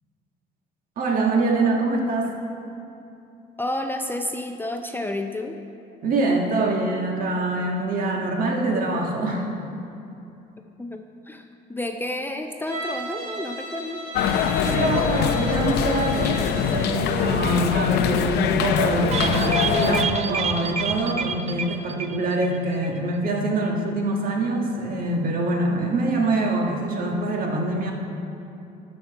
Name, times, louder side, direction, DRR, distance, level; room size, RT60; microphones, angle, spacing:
voice 1, 1.0-2.3 6.0-9.5 14.6-27.9, right 2 dB, 55° right, 1 dB, 1.5 m, -24 dB
voice 2, 3.6-5.6 10.8-14.0, left 1 dB, 10° left, 5 dB, 0.5 m, -30 dB
Bowed string instrument, 12.7-16.9, right 2 dB, 75° right, 2.1 m, -35 dB
sound 1, 14.1-20.0, left 8 dB, 80° left, 0.5 m, -23 dB
sound 2, 19.1-22.6 22.8-22.9 23.2-23.3, right 6 dB, 40° right, 0.5 m, -28 dB
12.5 x 5.5 x 4.6 m, 2.8 s
cardioid pair, 110°, 17 cm